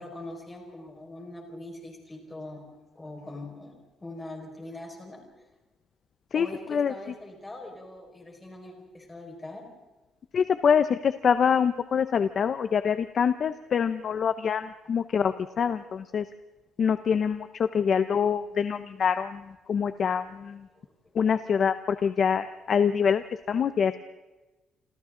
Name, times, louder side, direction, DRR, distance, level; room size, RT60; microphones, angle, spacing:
voice 1, 0.0-2.6 2.9-3.7 4.0-5.5 6.3-9.6 20.7-20.9, left 2 dB, 15° left, 1 dB, 5.0 m, -42 dB
voice 2, 6.3-6.9 10.3-16.3 16.8-20.7 21.1-24.0, left 7 dB, 40° left, 11 dB, 0.7 m, -25 dB
28.0 x 27.5 x 3.8 m, 1.1 s
cardioid pair, 175°, 0 cm